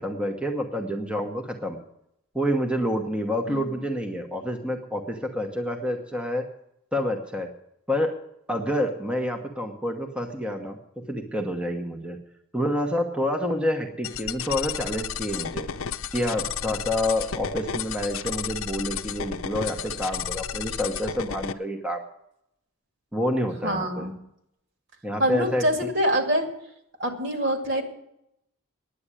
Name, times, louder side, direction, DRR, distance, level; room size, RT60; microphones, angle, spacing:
voice 1, 0.0-1.8 2.3-6.5 6.9-7.5 7.9-8.2 8.5-12.2 12.5-15.7 16.1-22.0 23.1-24.1 25.0-25.9, equal, 5° right, 3 dB, 1.0 m, -28 dB
sound 1, 14.0-21.5, left 7 dB, 75° left, 0.6 m, -32 dB
voice 2, 23.6-24.1 25.2-26.5 27.0-27.8, equal, 55° right, 4 dB, 2.2 m, -25 dB
10.0 x 8.8 x 9.8 m, 0.78 s
head